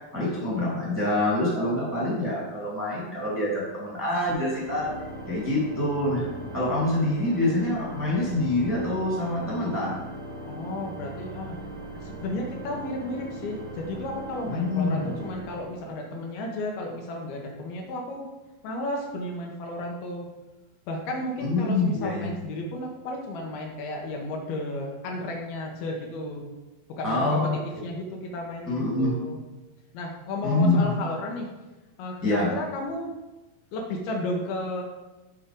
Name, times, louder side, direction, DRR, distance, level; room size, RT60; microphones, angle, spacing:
voice 1, 0.1-4.9 5.3-6.2 6.5-9.9 14.4-15.1 21.4-22.3 27.0-27.6 28.7-29.1 30.4-30.9 32.2-32.5, left 2 dB, 5° right, -5 dB, 1.8 m, -25 dB
Organ, 4.3-16.2, right 1 dB, 35° right, 1.9 m, -39 dB
voice 2, 10.4-11.6 11.9-18.3 18.6-20.3 20.9-26.4 26.9-27.5 27.8-29.4 29.9-31.5 32.0-33.1 33.7-34.8, left 1 dB, 75° left, 1 dB, 2.8 m, -33 dB
8.8 x 4.3 x 5.1 m, 1.1 s
omnidirectional pair, 4.6 m